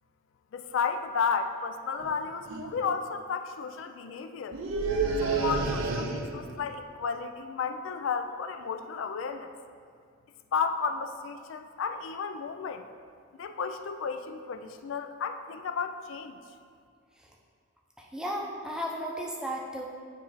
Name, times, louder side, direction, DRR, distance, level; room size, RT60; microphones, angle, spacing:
voice 1, 0.5-4.6 5.2-9.5 10.5-12.9 13.4-16.4, left 5 dB, 75° left, 7 dB, 0.4 m, -33 dB
sound 1, 2.0-2.2 2.5-2.8 4.5-6.5, right 4 dB, 85° right, 0.5 m, -29 dB
voice 2, 18.0-19.8, equal, 5° right, -2 dB, 0.6 m, -34 dB
9.3 x 3.1 x 4.1 m, 2.2 s
head